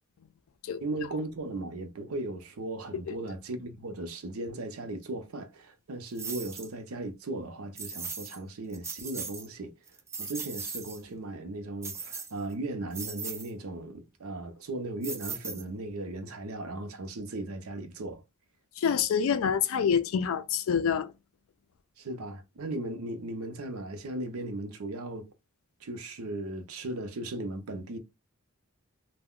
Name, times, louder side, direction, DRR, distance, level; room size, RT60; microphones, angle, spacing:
voice 1, 0.8-9.7 10.2-18.2 22.0-25.3 25.8-28.0, right 2 dB, 90° right, 0.6 m, -37 dB
sound 1, 6.2-6.7 7.8-8.4 8.7-9.5 9.9-11.0 11.8-12.5 12.9-13.5 15.0-15.9, right 5 dB, 15° right, 0.4 m, -38 dB
voice 2, 18.8-21.1, left 7 dB, 70° left, 0.4 m, -26 dB
2.3 x 2.1 x 3.6 m
head